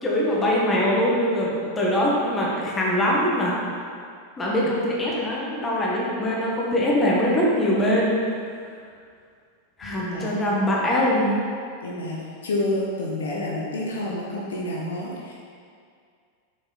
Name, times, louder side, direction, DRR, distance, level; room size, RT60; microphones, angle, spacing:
voice 1, 0.0-3.5 4.4-8.1 9.8-11.4, left 1 dB, 15° left, -5 dB, 1.7 m, -22 dB
voice 2, 9.8-10.4 11.8-15.3, left 1 dB, 65° left, -3 dB, 1.0 m, -29 dB
6.6 x 5.8 x 4.2 m, 2.2 s
figure-of-eight pair, 90°, 0 cm